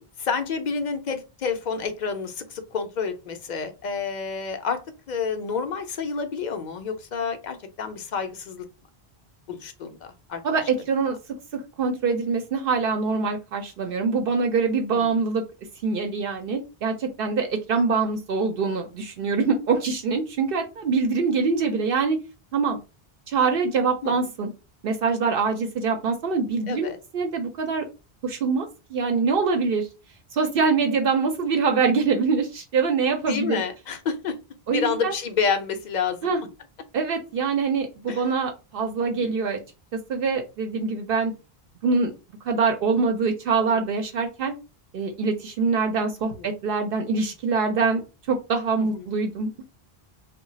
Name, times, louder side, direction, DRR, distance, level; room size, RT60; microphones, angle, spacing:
voice 1, 0.2-4.8 5.1-8.6 9.5-10.0 10.3-10.6 14.9-15.1 24.0-24.1 26.7-27.0 33.3-34.4 34.7-36.3 38.1-38.2 39.2-39.3 48.9-49.0, left 5 dB, 55° left, 7 dB, 0.6 m, -29 dB
voice 2, 10.4-11.2 11.8-15.4 15.8-22.2 22.5-22.8 23.3-24.5 24.8-26.9 27.1-27.8 28.2-29.9 30.3-33.6 34.7-35.1 36.2-36.4 36.9-39.6 39.9-41.3 41.8-42.1 42.4-44.5 44.9-48.0 48.3-49.5, right 4 dB, 65° right, 4 dB, 0.7 m, -24 dB
2.3 x 2.1 x 3.9 m, 0.29 s
omnidirectional pair, 1.0 m